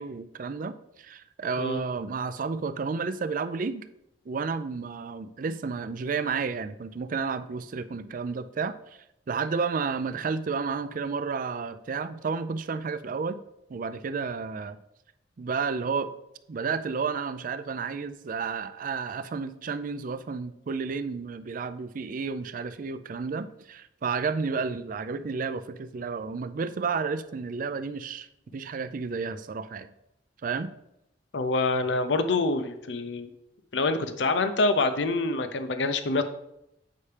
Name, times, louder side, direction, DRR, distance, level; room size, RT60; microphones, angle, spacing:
voice 1, 0.0-3.8 4.3-8.8 9.3-13.4 13.7-14.8 15.4-16.1 16.5-28.3 28.5-29.9 30.4-30.7, right 5 dB, 50° right, 13 dB, 0.4 m, -31 dB
voice 2, 31.3-33.3 33.7-36.2, left 3 dB, 75° left, 9 dB, 0.6 m, -26 dB
8.4 x 5.5 x 3.3 m, 0.83 s
head